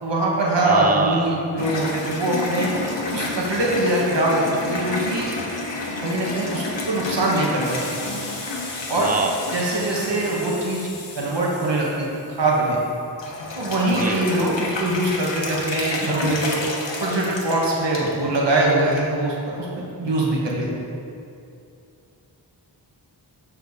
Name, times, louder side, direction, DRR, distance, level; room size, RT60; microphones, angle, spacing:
voice 1, 0.0-2.7 3.1-5.3 6.0-7.8 8.9-9.1 9.5-10.9 11.1-12.1 12.4-12.8 13.6-16.6 17.0-20.7, right 2 dB, 75° right, -4 dB, 1.3 m, -22 dB
voice 2, 0.6-1.4 8.9-9.4 13.9-14.2, right 4 dB, 20° right, 4 dB, 0.5 m, -26 dB
sound 1, 1.6-12.9 13.2-18.1 18.6-19.0 19.4-19.5 20.5-20.6, left 2 dB, 85° left, 1.1 m, -30 dB
7.3 x 6.9 x 4.1 m, 2.6 s
wide cardioid pair, 55°, 43 cm